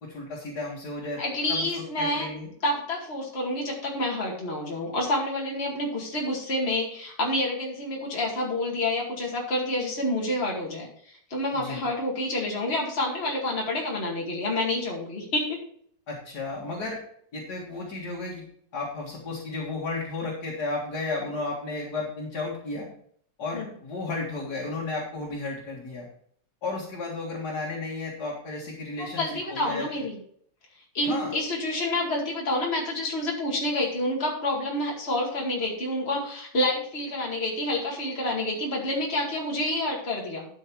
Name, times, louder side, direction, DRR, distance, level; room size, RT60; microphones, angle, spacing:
voice 1, 0.0-1.2 1.5-2.5 11.5-11.8 16.1-17.0 17.3-18.4 18.7-22.9 23.4-26.1 26.6-29.9 31.0-31.3, left 3 dB, 60° left, -4 dB, 2.5 m, -33 dB
voice 2, 1.2-2.3 2.6-15.6 23.5-23.7 29.0-30.2 30.9-40.5, left 1 dB, 35° left, -2 dB, 2.4 m, -28 dB
12.0 x 5.6 x 4.6 m, 0.62 s
omnidirectional pair, 1.9 m